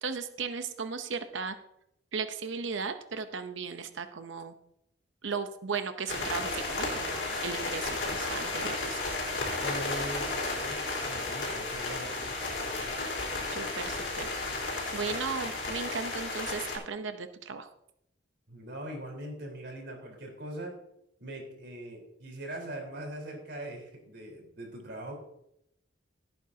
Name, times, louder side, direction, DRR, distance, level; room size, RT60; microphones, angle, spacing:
voice 1, 0.0-1.6 2.1-4.6 5.2-9.0 13.5-14.3 14.9-17.7, right 5 dB, 80° right, 9 dB, 0.8 m, -36 dB
sound 1, 6.1-16.8, left 2 dB, 65° left, 4.4 m, -33 dB
voice 2, 9.6-12.3 12.7-12.9 15.0-15.1 18.5-20.8 21.2-25.2, right 1 dB, 60° right, 1 dB, 4.1 m, -41 dB
17.5 x 9.0 x 2.8 m, 0.78 s
head